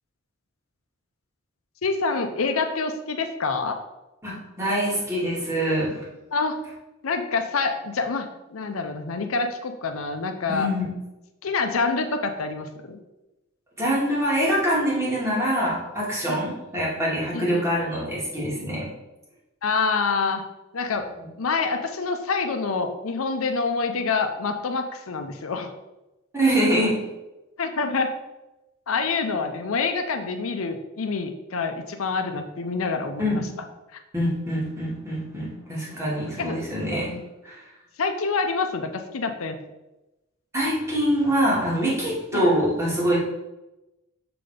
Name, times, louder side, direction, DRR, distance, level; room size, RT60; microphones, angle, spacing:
voice 1, 1.8-3.8 6.3-6.6 7.0-10.7 11.4-13.0 16.3-16.4 17.3-17.7 19.6-20.4 20.7-21.1 21.4-25.7 27.6-28.2 28.9-33.4 36.4-36.6 37.1-37.2 38.0-39.6 42.3-42.5, left 4 dB, 75° left, 6 dB, 0.6 m, -26 dB
voice 2, 4.2-6.1 10.5-10.9 13.8-18.9 26.3-27.0 33.2-33.4 34.1-37.1 37.4-37.7 40.5-43.2, equal, 15° right, -6 dB, 2.4 m, -24 dB
6.7 x 4.1 x 5.0 m, 0.99 s
head